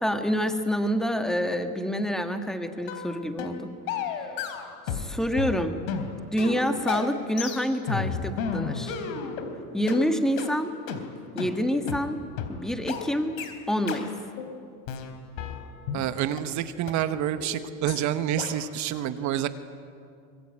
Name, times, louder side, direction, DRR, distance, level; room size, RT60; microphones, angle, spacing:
voice 1, 0.0-3.7 4.1-4.2 4.9-5.8 6.3-8.9 9.7-10.7 11.3-12.2 12.5-13.3 13.7-14.1, equal, ahead, 6 dB, 1.7 m, -27 dB
sound 1, 2.9-3.1 3.4-3.6 3.9-5.1 5.4-9.5 9.9-10.0 10.4-10.5 10.9-11.0 11.4-11.5 11.9-12.0 12.4-12.5 12.9-13.0 13.4-13.5 13.9-14.0 14.4-14.5 14.9-16.0 16.4-16.5 16.9-17.0 17.4-17.5 17.9-18.0 18.4-18.5, left 7 dB, 75° left, 3.7 m, -32 dB
voice 2, 15.9-19.5, right 11 dB, 45° right, 11 dB, 1.2 m, -28 dB
24.5 x 23.0 x 8.8 m, 2.4 s
supercardioid pair, 135°, 40 cm